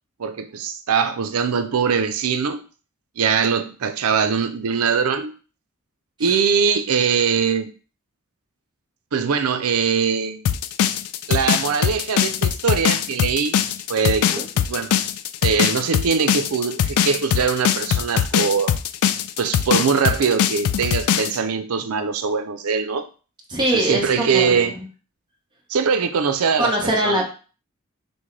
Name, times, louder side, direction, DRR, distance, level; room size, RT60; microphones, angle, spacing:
voice 1, 0.2-2.6 3.2-5.3 6.2-7.7 9.1-10.4 11.3-13.6 13.9-14.9 15.4-18.8 19.4-23.1 23.7-24.7 25.7-27.2, right 6 dB, 90° right, 0.5 m, -22 dB
sound 1, 10.5-21.4, left 9 dB, 85° left, 0.3 m, -21 dB
voice 2, 23.5-24.9 26.6-27.3, right 1 dB, 20° right, 1.0 m, -23 dB
6.1 x 2.2 x 3.2 m
head